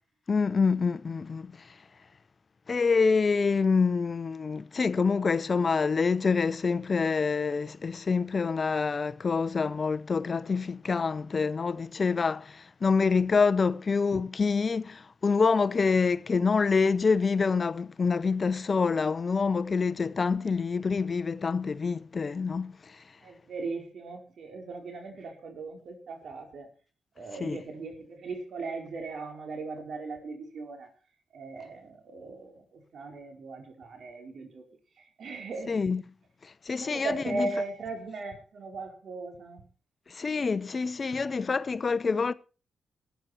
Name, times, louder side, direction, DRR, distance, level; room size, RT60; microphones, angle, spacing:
voice 1, 0.3-1.5 2.7-22.7 27.4-27.6 35.7-36.0 36.7-37.5 40.1-42.3, left 5 dB, 45° left, 0.8 m, -26 dB
voice 2, 23.2-26.7 27.2-30.9 31.3-34.6 35.2-35.7 36.8-39.6, right 3 dB, 70° right, 4.7 m, -38 dB
14.5 x 9.3 x 5.8 m
cardioid pair, 60°, 0 cm